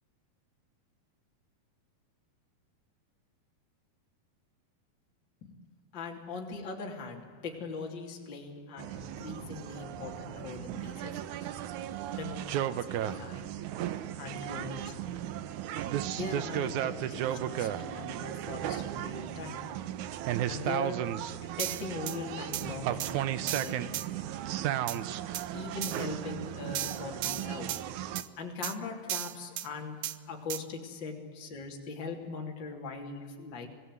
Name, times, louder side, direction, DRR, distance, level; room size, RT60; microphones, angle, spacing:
voice 1, 5.9-11.5 12.1-13.6 14.2-15.3 16.1-19.8 20.5-23.9 25.5-27.9 28.4-33.7, left 4 dB, 30° left, 1 dB, 3.5 m, -41 dB
sound 1, 8.8-28.2, right 11 dB, 70° right, 2.0 m, -35 dB
sound 2, 21.6-22.2 22.5-22.7 23.0-23.1 23.5-24.1 24.9-25.0 25.3-25.5 25.8-26.0 26.7-27.8 28.1-28.3 28.6-28.7 29.1-29.7 30.0-30.2 30.5-30.6, right 12 dB, 85° right, 1.5 m, -35 dB
26.0 x 19.0 x 9.7 m, 1.4 s
omnidirectional pair, 4.4 m